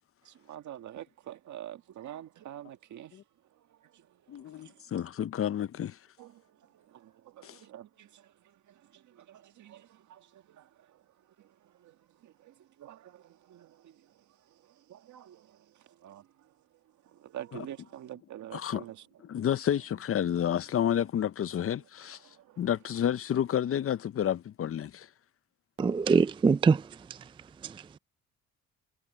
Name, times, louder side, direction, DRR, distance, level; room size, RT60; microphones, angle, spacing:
voice 1, 0.2-3.2 3.5-4.8 6.2-11.1 11.4-16.5 17.0-19.1 22.2-22.7, right 11 dB, 75° right, 1.9 m, -48 dB
voice 2, 4.3-6.0 7.4-7.6 18.5-18.8 19.2-22.2 22.6-25.1, left 10 dB, 50° left, 0.7 m, -30 dB
voice 3, 25.8-27.2 27.6-27.8, right 5 dB, 15° right, 0.3 m, -24 dB
cardioid pair, 90°, 30 cm